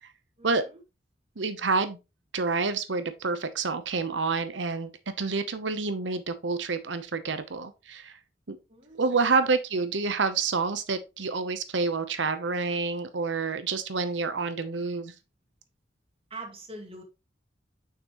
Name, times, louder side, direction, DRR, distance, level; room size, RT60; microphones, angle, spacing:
voice 1, 0.4-0.8 8.7-9.5 16.3-17.0, right 2 dB, 30° right, 2.0 m, -44 dB
voice 2, 1.4-2.0 2.3-4.9 5.2-8.2 8.5-8.6 9.0-15.1, right 4 dB, 75° right, 0.9 m, -28 dB
6.2 x 5.9 x 3.0 m
head